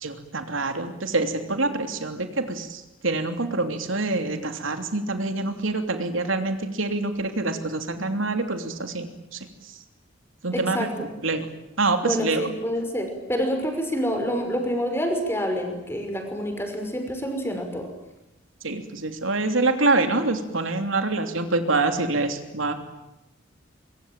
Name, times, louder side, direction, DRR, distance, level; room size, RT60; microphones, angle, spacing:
voice 1, 0.0-9.1 10.4-11.5 11.8-12.5 18.6-22.7, right 3 dB, 80° right, 7 dB, 3.1 m, -26 dB
voice 2, 10.5-11.1 12.0-17.9, equal, 10° left, 4 dB, 5.9 m, -27 dB
25.0 x 24.0 x 9.1 m, 0.93 s
head